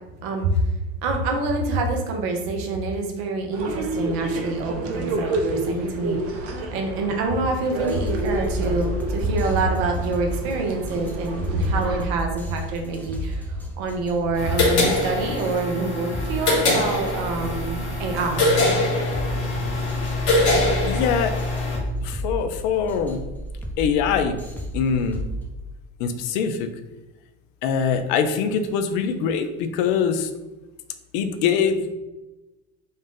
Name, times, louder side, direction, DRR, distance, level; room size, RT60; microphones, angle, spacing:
voice 1, 1.0-6.2 6.4-18.6, right 3 dB, 65° right, 3 dB, 1.0 m, -26 dB
sound 1, 3.5-12.0, right 2 dB, 45° right, 0.8 m, -29 dB
sound 2, 7.8-25.5, equal, 5° left, 0.8 m, -33 dB
sound 3, 14.4-21.8, left 2 dB, 80° left, 1.4 m, -23 dB
voice 2, 20.9-21.3 22.0-23.2 23.8-24.4 24.7-25.2 26.0-26.7 27.6-30.3 31.1-32.0, left 6 dB, 65° left, 8 dB, 0.6 m, -23 dB
3.9 x 2.4 x 3.8 m, 1.1 s
hypercardioid pair, 80°, 33 cm